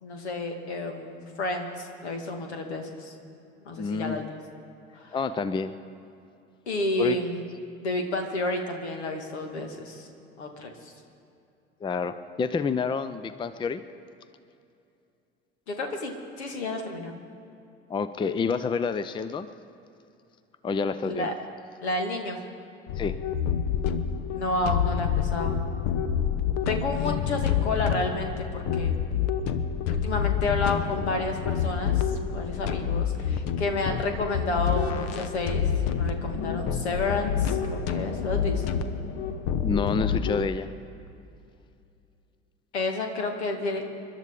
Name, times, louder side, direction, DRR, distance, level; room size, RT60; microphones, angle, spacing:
voice 1, 0.0-1.7 2.0-3.1 3.7-4.2 4.9-5.2 6.7-7.5 7.8-10.1 10.4-10.9 15.7-17.2 21.0-21.3 21.8-22.4 24.3-25.6 26.7-28.9 29.9-38.8 42.7-43.8, left 2 dB, 70° left, 5 dB, 2.0 m, -30 dB
voice 2, 3.8-4.2 5.1-5.7 7.0-7.2 11.8-13.8 17.9-19.5 20.6-21.3 23.0-23.1 39.6-40.7, left 5 dB, 15° left, 14 dB, 0.5 m, -28 dB
sound 1, 22.9-40.5, left 8 dB, 50° left, 0.9 m, -28 dB
29.0 x 12.0 x 3.7 m, 2.6 s
figure-of-eight pair, 65°, 34 cm